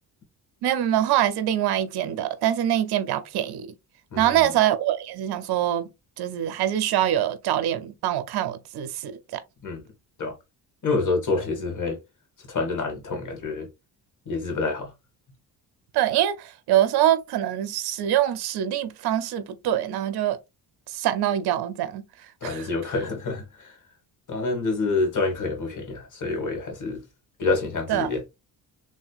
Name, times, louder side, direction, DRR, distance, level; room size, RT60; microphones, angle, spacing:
voice 1, 0.6-3.7 4.2-5.9 6.2-9.4 15.9-20.4 20.9-22.0 22.4-22.7 27.9-28.1, right 11 dB, 60° right, 0.6 m, -24 dB
voice 2, 4.1-4.5 9.6-9.8 10.2-10.4 10.8-12.0 12.5-13.7 14.3-14.9 22.4-23.8 24.3-27.0 27.4-28.2, left 3 dB, 45° left, 1.7 m, -27 dB
3.3 x 2.7 x 2.3 m
cardioid pair, 90°, 42 cm